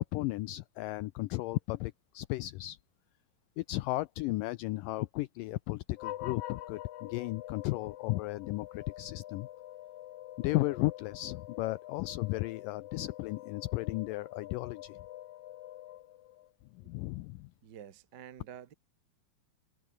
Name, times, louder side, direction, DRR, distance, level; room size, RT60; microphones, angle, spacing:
voice 1, 0.1-2.8 3.6-9.5 10.4-15.0 16.7-17.5, left 19 dB, 90° left, 1.9 m, -34 dB
sound 1, 6.0-16.5, left 14 dB, 70° left, 1.8 m, -46 dB
voice 2, 17.6-18.7, right 9 dB, 80° right, 0.9 m, -49 dB
omnidirectional pair, 4.5 m